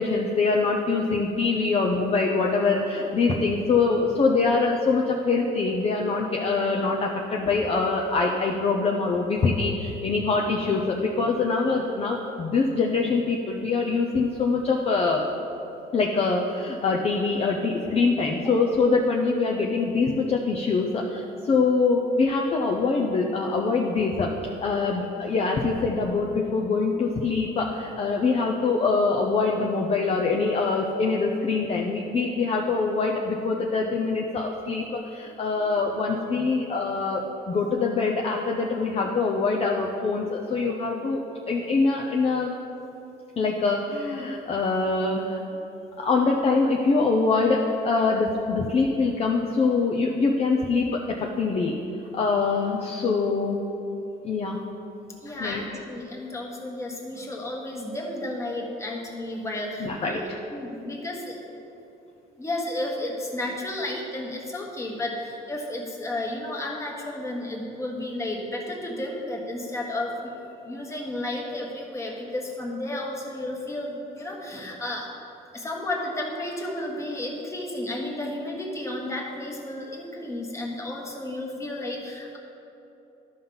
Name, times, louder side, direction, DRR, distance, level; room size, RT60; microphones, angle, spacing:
voice 1, 0.0-15.2 15.9-24.3 24.6-37.2 37.5-41.2 41.5-42.6 43.4-45.4 46.0-51.7 52.1-53.6 54.2-54.6 55.4-55.6 59.8-60.2, left 4 dB, 35° left, -1 dB, 0.7 m, -24 dB
voice 2, 55.2-61.4 62.4-75.1 75.5-82.4, left 1 dB, 15° left, -1 dB, 1.4 m, -32 dB
12.0 x 5.6 x 3.9 m, 2.9 s
cardioid pair, 110°, 17 cm